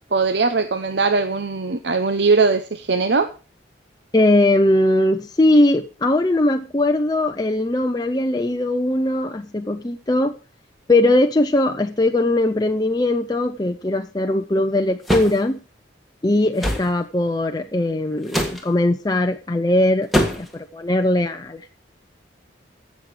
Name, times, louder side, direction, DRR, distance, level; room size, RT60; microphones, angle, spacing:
voice 1, 0.1-3.3, right 4 dB, 60° right, 9 dB, 0.7 m, -20 dB
voice 2, 4.1-10.4 10.9-15.6 16.2-20.1 20.4-21.7, left 1 dB, 20° left, 5 dB, 0.5 m, -20 dB
sound 1, 15.1-15.4 16.6-16.9 18.3-18.6 20.1-20.5, equal, ahead, 1.7 m, -21 dB
16.0 x 6.3 x 5.0 m, 0.35 s
head